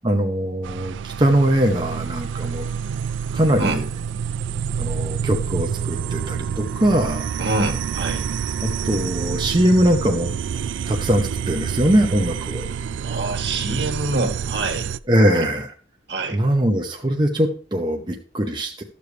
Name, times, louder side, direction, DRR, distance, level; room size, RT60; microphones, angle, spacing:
voice 1, 0.0-2.7 3.3-3.9 4.8-7.3 8.6-10.4 10.9-12.7 15.1-15.7 16.3-18.8, equal, 25° right, 2 dB, 0.8 m, -21 dB
sound 1, 0.6-15.0, right 7 dB, 90° right, 0.3 m, -28 dB
voice 2, 7.4-8.2 13.0-14.9 15.3-15.5 16.1-16.4, right 2 dB, 70° right, 3 dB, 1.7 m, -25 dB
13.0 x 6.8 x 3.3 m, 0.42 s
head